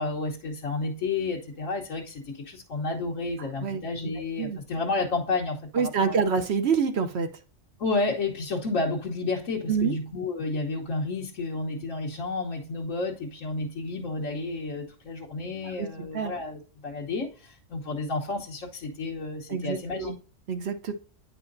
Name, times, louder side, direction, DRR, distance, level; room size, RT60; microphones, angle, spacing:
voice 1, 0.0-6.3 7.8-20.1, left 3 dB, 90° left, 1.5 m, -31 dB
voice 2, 4.2-4.6 5.7-7.3 9.7-9.9 15.6-15.9 16.1-16.3 19.5-20.1 20.5-20.9, right 6 dB, 60° right, 1.0 m, -27 dB
9.5 x 5.0 x 2.6 m
omnidirectional pair, 1.3 m